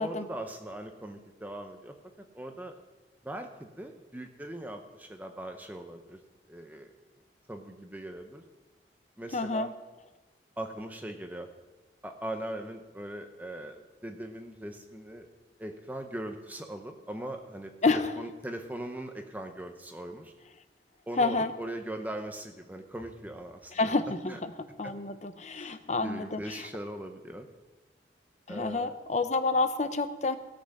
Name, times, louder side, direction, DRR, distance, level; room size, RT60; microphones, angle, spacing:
voice 1, 0.0-1.9 2.3-2.8 3.2-6.2 6.5-6.9 7.5-8.4 9.2-9.7 10.6-11.5 12.0-15.3 15.6-20.3 21.1-23.9 24.3-24.4 24.8-24.9 25.5-27.5 28.5-28.9, right 1 dB, 10° right, 5 dB, 0.7 m, -40 dB
voice 2, 9.3-9.7 17.8-18.2 21.2-21.5 23.7-24.5 24.8-26.7 28.5-30.4, left 3 dB, 40° left, 10 dB, 0.7 m, -29 dB
16.5 x 6.0 x 6.6 m, 1.2 s
head